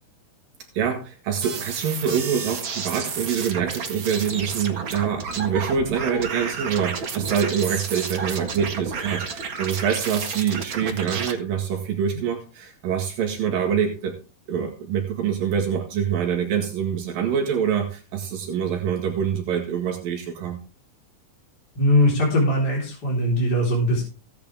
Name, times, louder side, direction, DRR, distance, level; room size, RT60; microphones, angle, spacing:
voice 1, 0.7-14.1 14.5-20.6, right 7 dB, 80° right, 2 dB, 3.3 m, -25 dB
sound 1, 1.4-11.3, right 5 dB, 45° right, 1.9 m, -31 dB
voice 2, 21.7-24.0, left 1 dB, 25° left, -4 dB, 4.4 m, -20 dB
16.5 x 9.6 x 3.5 m, 0.33 s
omnidirectional pair, 4.1 m